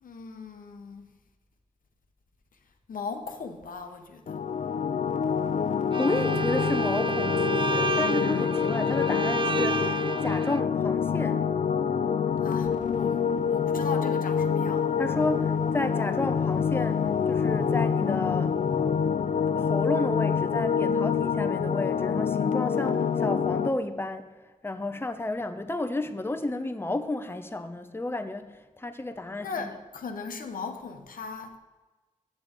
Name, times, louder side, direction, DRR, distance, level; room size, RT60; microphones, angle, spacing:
voice 1, 0.0-1.1 2.9-4.4 12.4-14.9 29.4-31.6, left 4 dB, 85° left, 0.8 m, -38 dB
sound 1, 4.3-23.7, left 6 dB, 65° left, 0.5 m, -26 dB
Bowed string instrument, 5.9-10.6, right 4 dB, 35° right, 0.4 m, -31 dB
voice 2, 6.0-11.5 15.0-18.6 19.6-29.7, left 2 dB, 15° left, 0.7 m, -32 dB
7.6 x 7.1 x 5.0 m
cardioid pair, 45°, 14 cm